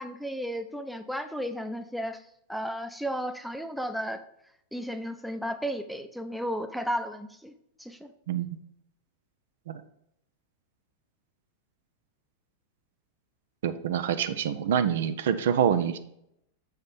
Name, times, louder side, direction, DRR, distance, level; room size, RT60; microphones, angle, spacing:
voice 1, 0.0-2.2 2.5-4.2 4.7-7.5 7.8-8.1, equal, ahead, 7 dB, 0.6 m, -33 dB
voice 2, 13.6-16.0, right 8 dB, 60° right, 10 dB, 0.5 m, -26 dB
7.2 x 5.0 x 4.1 m, 0.75 s
figure-of-eight pair, 90°, 0 cm